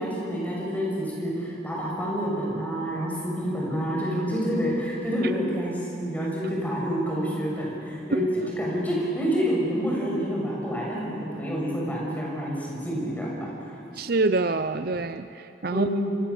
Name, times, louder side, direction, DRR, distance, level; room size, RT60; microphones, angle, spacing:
voice 1, 0.0-13.5 15.7-16.1, equal, 10° left, -4 dB, 6.8 m, -28 dB
voice 2, 13.9-15.9, right 3 dB, 50° right, 11 dB, 0.6 m, -26 dB
28.0 x 25.0 x 7.2 m, 2.7 s
head